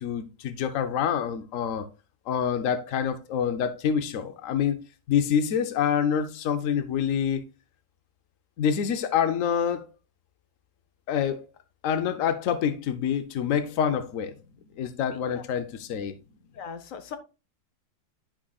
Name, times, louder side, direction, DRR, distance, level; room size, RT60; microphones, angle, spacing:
voice 1, 0.0-1.9 2.3-4.8 5.1-7.4 8.6-9.9 11.1-11.5 11.8-14.3 14.8-16.1, left 8 dB, 90° left, 0.7 m, -26 dB
voice 2, 16.5-17.2, left 6 dB, 60° left, 0.9 m, -39 dB
11.0 x 4.9 x 2.3 m
omnidirectional pair, 2.2 m